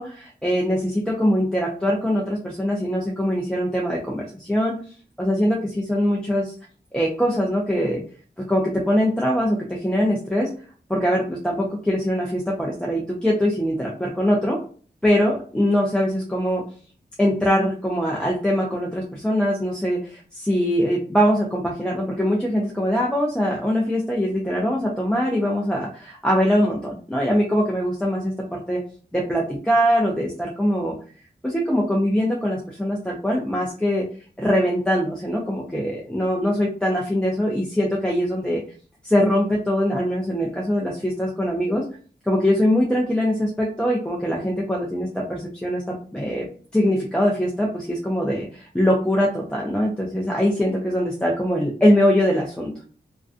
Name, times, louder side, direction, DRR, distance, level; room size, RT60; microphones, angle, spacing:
voice 1, 0.0-4.7 5.2-6.5 6.9-8.0 8.5-10.5 10.9-14.6 15.0-16.6 17.2-28.8 29.1-30.9 31.4-34.0 34.4-38.6 39.0-41.9 42.2-45.8 46.1-46.5 46.7-52.7, equal, 5° left, -3 dB, 0.4 m, -22 dB
2.4 x 2.2 x 2.5 m, 0.41 s
wide cardioid pair, 120°, 18 cm